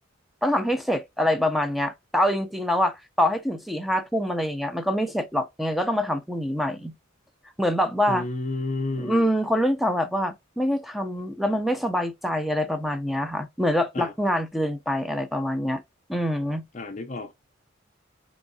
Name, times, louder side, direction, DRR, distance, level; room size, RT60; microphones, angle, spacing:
voice 1, 0.4-6.9 7.6-8.3 9.0-15.8 16.1-16.6, equal, ahead, 0.5 m, -25 dB
voice 2, 8.1-9.3 13.9-14.1 16.7-17.3, left 2 dB, 35° left, 0.6 m, -31 dB
4.6 x 3.0 x 2.6 m
head